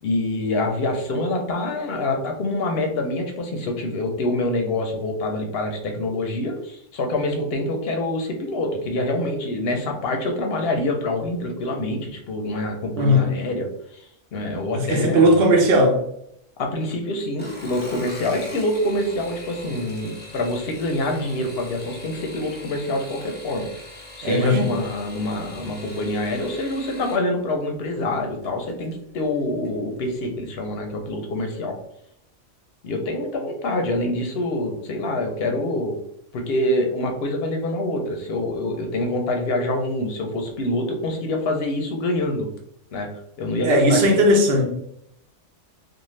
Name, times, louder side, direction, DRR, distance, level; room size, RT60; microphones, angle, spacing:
voice 1, 0.0-15.5 16.6-23.7 24.2-31.8 32.8-36.0 36.3-42.5 42.9-43.1 43.4-44.0, left 1 dB, 65° left, 2 dB, 0.7 m, -26 dB
voice 2, 13.0-13.3 14.7-16.0 24.2-24.7 43.6-44.7, equal, 60° right, 2 dB, 0.8 m, -17 dB
sound 1, 17.3-27.2 28.4-28.9 29.3-29.8 30.0-30.1, left 1 dB, 15° left, 0.4 m, -41 dB
2.6 x 2.4 x 3.0 m, 0.74 s
omnidirectional pair, 1.3 m